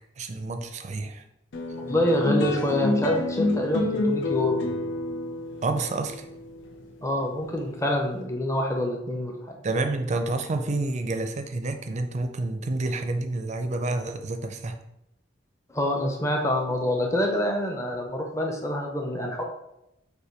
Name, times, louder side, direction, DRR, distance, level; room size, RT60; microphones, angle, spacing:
voice 1, 0.2-1.2 5.6-6.3 9.6-14.8, right 2 dB, 40° right, 7 dB, 0.4 m, -29 dB
sound 1, 1.5-8.2, left 1 dB, 90° left, 0.7 m, -28 dB
voice 2, 1.8-4.6 7.0-9.6 15.7-19.4, left 1 dB, 15° left, 1 dB, 0.6 m, -26 dB
5.5 x 2.2 x 4.4 m, 0.85 s
head